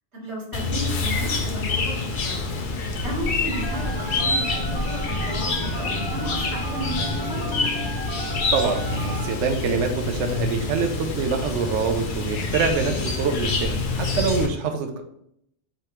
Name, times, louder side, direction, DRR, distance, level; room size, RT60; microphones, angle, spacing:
voice 1, 0.1-2.4 2.9-4.4 4.7-7.4, right 1 dB, 70° right, -3 dB, 1.7 m, -34 dB
Chirp tweet, 0.5-14.5, left 3 dB, 55° left, 0.7 m, -27 dB
Telephone, 3.5-9.3, right 3 dB, 40° right, 0.3 m, -36 dB
voice 2, 8.3-15.0, right 5 dB, 90° right, 5 dB, 0.9 m, -25 dB
4.9 x 3.2 x 2.9 m, 0.72 s
omnidirectional pair, 1.2 m